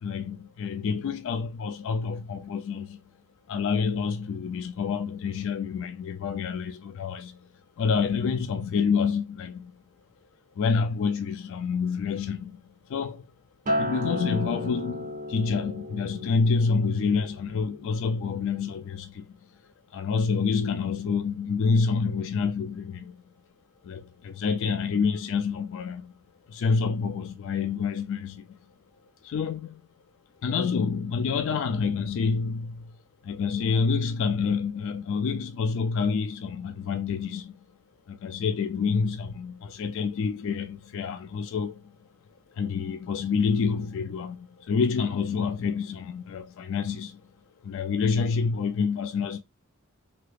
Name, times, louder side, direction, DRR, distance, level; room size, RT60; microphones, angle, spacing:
voice 1, 0.0-3.0 3.5-7.4 7.8-9.7 10.6-13.3 13.8-19.3 19.6-23.2 23.8-26.1 26.5-28.6 29.2-29.8 30.4-32.9 33.2-37.6 38.1-41.9 42.6-47.2 47.6-49.4, left 5 dB, 60° left, 0.3 m, -28 dB
Acoustic guitar, 13.7-18.1 18.5-18.9, equal, 35° right, 0.5 m, -34 dB
2.9 x 2.3 x 3.2 m
head